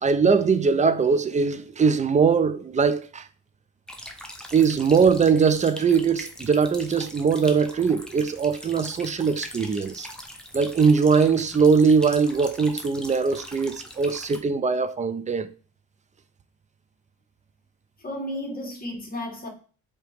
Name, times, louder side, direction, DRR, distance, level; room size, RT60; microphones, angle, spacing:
voice 1, 0.0-3.2 4.5-10.1 10.5-15.5, right 5 dB, 25° right, 0.4 m, -21 dB
sound 1, 3.9-14.4, equal, 5° left, 0.8 m, -41 dB
voice 2, 18.0-19.5, left 1 dB, 30° left, 1.4 m, -33 dB
4.7 x 2.9 x 3.3 m
cardioid pair, 90°, 30 cm